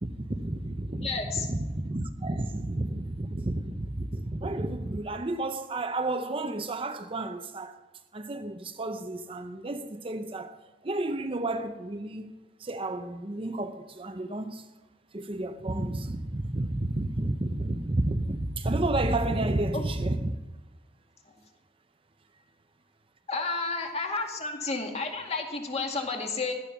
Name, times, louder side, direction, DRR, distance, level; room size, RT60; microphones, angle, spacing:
voice 1, 0.0-7.8 8.1-10.6 10.8-12.3 12.6-14.7 15.1-20.3, right 2 dB, 30° right, 0.7 m, -31 dB
voice 2, 1.0-1.5 19.7-19.8 23.3-26.5, left 3 dB, 35° left, 2.2 m, -31 dB
17.0 x 12.0 x 6.0 m
head